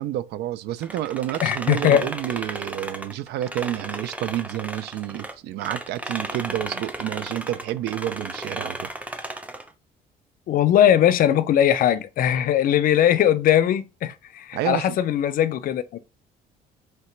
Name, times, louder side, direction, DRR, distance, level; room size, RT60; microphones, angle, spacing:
voice 1, 0.0-8.9 14.5-15.0, right 13 dB, 80° right, 0.4 m, -29 dB
sound 1, 0.8-5.3 5.6-9.7, right 1 dB, 10° right, 0.7 m, -34 dB
voice 2, 1.4-2.1 10.5-16.0, left 10 dB, 55° left, 0.5 m, -20 dB
3.3 x 2.9 x 4.4 m
cardioid pair, 110°, 17 cm